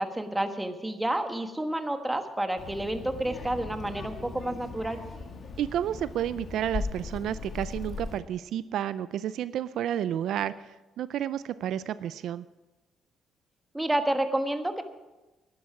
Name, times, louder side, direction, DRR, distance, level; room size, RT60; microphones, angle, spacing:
voice 1, 0.0-5.0 13.7-14.8, right 1 dB, 10° right, 7 dB, 1.3 m, -29 dB
Child speech kid speaking, 2.6-8.2, left 4 dB, 50° left, 2.2 m, -38 dB
voice 2, 5.6-10.7 11.0-12.4, right 10 dB, 75° right, 16 dB, 0.4 m, -31 dB
11.5 x 11.0 x 6.0 m, 1.1 s
cardioid pair, 90°, 0 cm